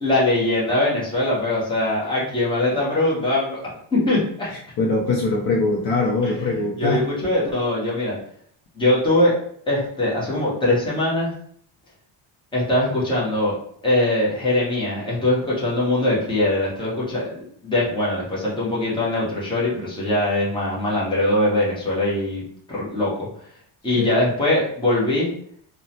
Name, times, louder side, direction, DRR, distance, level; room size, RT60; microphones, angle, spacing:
voice 1, 0.0-4.5 6.2-8.2 8.7-9.3 9.7-11.3 12.5-13.6 13.8-22.4 22.7-23.3 23.8-25.3, left 1 dB, 10° left, -7 dB, 0.6 m, -22 dB
voice 2, 4.8-7.0 24.0-24.1, left 3 dB, 50° left, -3 dB, 0.5 m, -22 dB
3.0 x 2.1 x 2.6 m, 0.62 s
cardioid pair, 175°, 50 cm